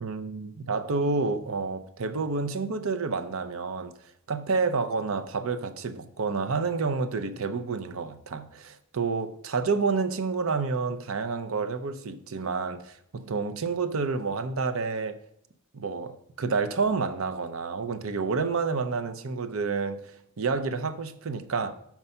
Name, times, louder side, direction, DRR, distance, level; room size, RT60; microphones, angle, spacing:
voice 1, 0.0-3.9 4.3-15.2 15.7-20.0 20.4-21.8, right 4 dB, 70° right, 0.6 m, -29 dB
6.0 x 5.4 x 5.5 m
head